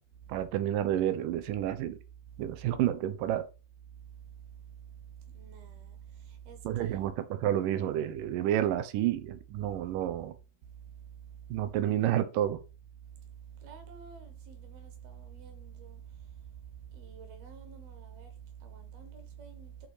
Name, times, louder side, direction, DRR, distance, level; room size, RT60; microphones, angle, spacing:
voice 1, 0.3-2.0 2.4-3.5 6.6-10.4 11.5-12.6, right 12 dB, 80° right, 1.9 m, -30 dB
voice 2, 2.2-2.6 3.9-7.1 9.6-9.8 10.6-11.7 13.0-19.9, right 8 dB, 60° right, 3.3 m, -48 dB
12.0 x 4.2 x 5.0 m
omnidirectional pair, 5.2 m